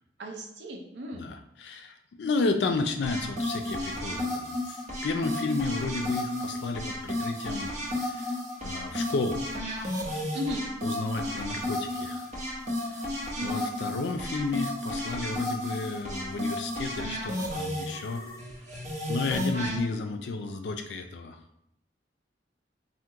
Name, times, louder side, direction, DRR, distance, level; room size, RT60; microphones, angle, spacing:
voice 1, 0.2-1.3 10.3-10.6 13.3-13.7, equal, 70° right, 2 dB, 0.5 m, -35 dB
voice 2, 1.1-7.7 7.9-8.3 8.6-10.0 10.8-12.3 12.9-13.0 13.4-18.3 19.1-21.4, left 3 dB, 70° left, 6 dB, 0.4 m, -32 dB
sound 1, 3.0-19.8, left 1 dB, 40° right, 0.8 m, -33 dB
2.8 x 2.1 x 3.4 m, 0.78 s
head